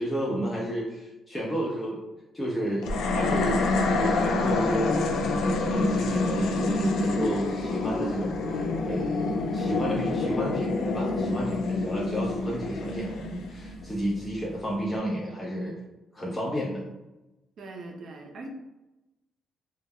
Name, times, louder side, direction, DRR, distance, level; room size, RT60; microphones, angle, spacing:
voice 1, 0.0-2.0 2.3-4.9 5.3-15.7 16.1-16.8, equal, 15° left, -5 dB, 0.5 m, -31 dB
sound 1, 2.8-14.2, left 3 dB, 75° left, 0.3 m, -27 dB
voice 2, 17.6-18.5, right 3 dB, 60° right, 2 dB, 0.5 m, -41 dB
2.2 x 2.0 x 3.4 m, 1.0 s
cardioid pair, 90°, 0 cm